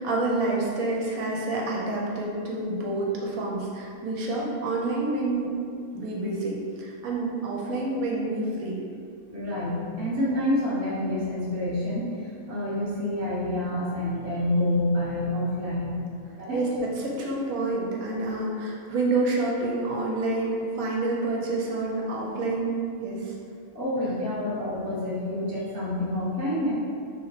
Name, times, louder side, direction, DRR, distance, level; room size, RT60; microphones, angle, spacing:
voice 1, 0.0-5.5 5.9-8.8 16.5-23.3, right 2 dB, 75° right, -3 dB, 1.0 m, -28 dB
voice 2, 9.3-16.0 16.4-16.6 23.7-26.7, left 1 dB, 20° right, -8 dB, 0.5 m, -28 dB
3.2 x 2.8 x 4.0 m, 2.4 s
omnidirectional pair, 1.6 m